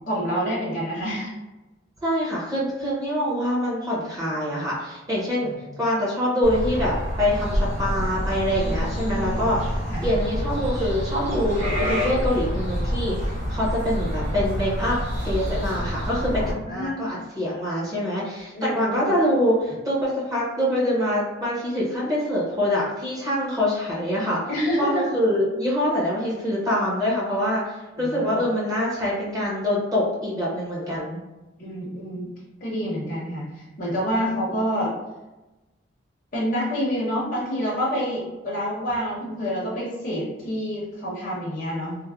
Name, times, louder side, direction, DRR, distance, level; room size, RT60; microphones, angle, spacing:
voice 1, 0.1-1.3 5.4-5.5 8.6-9.4 9.9-10.1 16.6-17.2 18.5-19.1 24.5-25.0 27.9-28.4 31.6-32.3 32.6-34.9 36.3-42.0, equal, 45° left, -6 dB, 0.7 m, -28 dB
voice 2, 2.0-5.5 5.8-9.6 10.0-13.1 13.5-15.0 15.2-16.4 16.7-24.4 24.8-31.2, equal, 20° right, -7 dB, 0.7 m, -25 dB
sound 1, 6.4-16.5, equal, 35° right, 1.1 m, -27 dB
3.2 x 2.0 x 2.3 m, 1.1 s
head